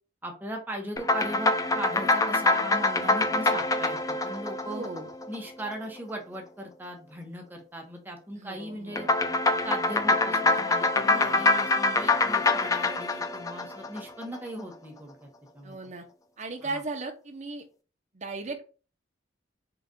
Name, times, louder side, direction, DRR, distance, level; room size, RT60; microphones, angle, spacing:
voice 1, 0.2-4.8 5.3-9.1 9.6-15.3 15.5-15.8 16.6-16.8, right 1 dB, 10° right, 1 dB, 0.9 m, -38 dB
sound 1, 1.0-5.6 9.0-14.4, left 2 dB, 20° left, 0.3 m, -25 dB
voice 2, 4.6-5.1 8.3-9.2 11.0-11.6 15.6-16.0 16.4-17.6 18.1-18.6, right 3 dB, 40° right, 4 dB, 0.7 m, -37 dB
3.9 x 2.4 x 3.6 m, 0.36 s
head